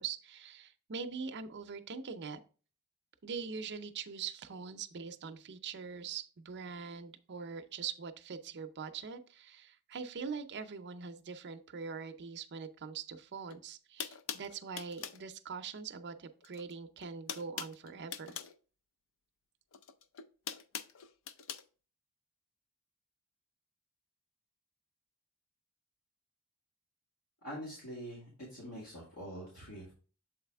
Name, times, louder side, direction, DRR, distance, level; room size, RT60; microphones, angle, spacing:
voice 1, 0.0-2.4 3.2-18.4, right 5 dB, 50° right, 8 dB, 0.6 m, -43 dB
sound 1, 13.5-13.6 14.0-15.2 16.4-16.7 17.0-18.6 19.7-21.6, left 7 dB, 65° left, 0.4 m, -42 dB
voice 2, 27.4-29.9, equal, 85° left, -6 dB, 2.2 m, -45 dB
7.2 x 4.1 x 3.4 m, 0.38 s
head